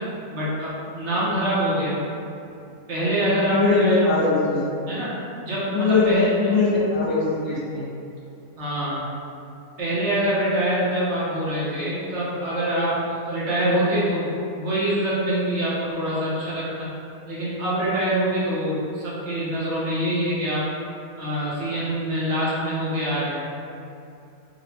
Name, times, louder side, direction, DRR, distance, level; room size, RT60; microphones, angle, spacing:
voice 1, 0.3-2.0 2.9-4.1 4.9-5.2 5.4-6.5 8.6-9.0 9.8-16.9 17.3-20.6 21.2-23.4, right 1 dB, 60° right, -8 dB, 0.8 m, -25 dB
voice 2, 3.5-4.7 5.7-7.8, left 4 dB, 65° left, -10 dB, 0.8 m, -21 dB
4.0 x 2.0 x 2.8 m, 2.6 s
omnidirectional pair, 1.7 m